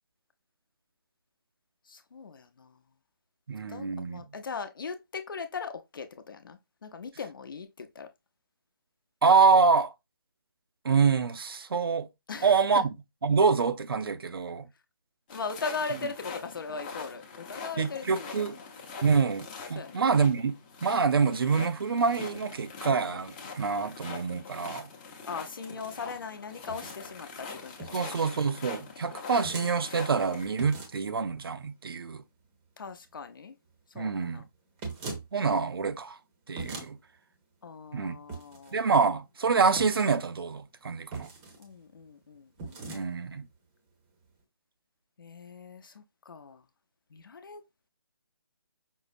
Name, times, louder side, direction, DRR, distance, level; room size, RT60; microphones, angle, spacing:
voice 1, 1.9-2.8 3.7-8.1 12.3-12.8 15.3-18.5 19.7-20.0 25.3-27.8 28.1-28.2 32.8-33.5 33.9-34.4 37.6-38.8 41.6-42.9 45.2-46.6 47.1-47.6, left 5 dB, 60° left, 0.7 m, -39 dB
voice 2, 3.5-4.2 9.2-9.9 10.8-12.1 12.4-12.9 13.2-14.7 17.8-18.6 19.0-20.6 20.8-24.9 27.9-32.2 34.0-34.4 35.3-36.2 36.5-37.0 37.9-38.2 38.7-41.3 42.9-43.5, right 5 dB, 70° right, 0.5 m, -26 dB
sound 1, 15.3-30.5, left 5 dB, 20° left, 0.7 m, -43 dB
sound 2, 26.7-27.0 27.8-28.2 29.4-29.8 30.6-31.1 34.8-35.3 36.6-36.9 38.3-38.7 39.8-40.2 41.1-41.6 42.6-43.0, right 3 dB, 15° right, 0.7 m, -40 dB
5.3 x 2.0 x 2.5 m
figure-of-eight pair, 155°, 13 cm